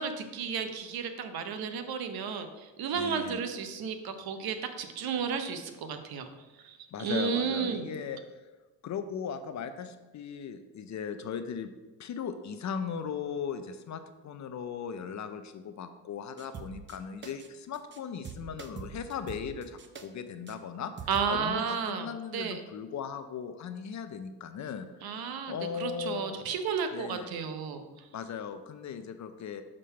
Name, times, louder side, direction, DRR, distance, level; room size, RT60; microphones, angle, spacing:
voice 1, 0.0-6.3 6.6-7.9 21.1-22.1 22.3-22.6 25.0-27.8, right 6 dB, 55° right, 8 dB, 0.9 m, -33 dB
voice 2, 2.9-3.4 6.9-8.2 8.8-11.7 12.0-20.9 21.3-26.4 26.9-27.3 28.1-29.6, left 7 dB, 40° left, 9 dB, 0.6 m, -38 dB
sound 1, 16.4-17.0 17.2-17.5 17.7-18.0 18.2-20.0 20.5-20.6 21.0-21.3, right 6 dB, 25° right, 0.7 m, -43 dB
6.4 x 3.7 x 5.6 m, 1.2 s
supercardioid pair, 90°, 44 cm